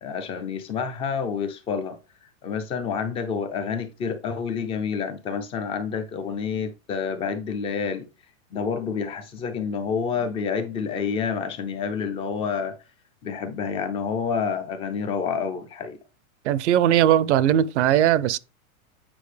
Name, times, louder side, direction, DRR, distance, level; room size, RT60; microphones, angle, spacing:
voice 1, 0.0-8.1 8.5-12.8 13.2-16.0, left 6 dB, 15° left, 0.5 m, -28 dB
voice 2, 16.5-18.4, right 11 dB, 55° right, 0.6 m, -19 dB
8.6 x 4.9 x 3.3 m
supercardioid pair, 155°, 42 cm